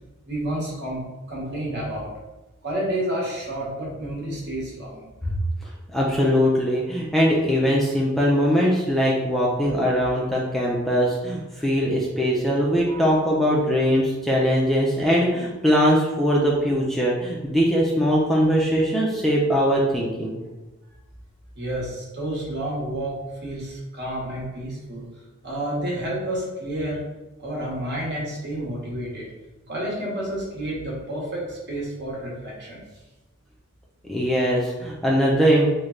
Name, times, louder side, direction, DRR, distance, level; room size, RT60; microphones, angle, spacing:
voice 1, 0.2-1.0 1.3-2.1 2.6-5.1 12.9-13.0 21.5-23.2 23.4-25.1 25.4-27.0 27.4-29.3 29.7-32.8, right 1 dB, 55° right, -4 dB, 1.1 m, -30 dB
voice 2, 5.6-20.4 34.1-35.7, equal, ahead, -4 dB, 0.3 m, -21 dB
3.2 x 2.1 x 3.6 m, 1.1 s
head